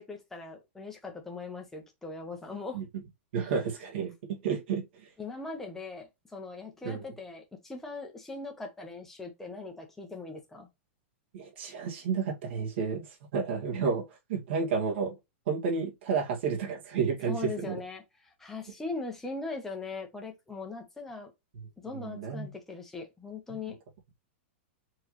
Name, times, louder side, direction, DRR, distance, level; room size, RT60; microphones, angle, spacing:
voice 1, 0.0-2.8 5.2-10.7 17.3-21.3 21.8-23.8, left 3 dB, 5° left, 1.1 m, -40 dB
voice 2, 3.3-4.9 6.8-7.0 11.3-13.1 13.3-15.2 15.5-17.8 21.9-22.5, right 6 dB, 60° right, 2.3 m, -31 dB
4.8 x 3.4 x 3.2 m
supercardioid pair, 165°, 7 cm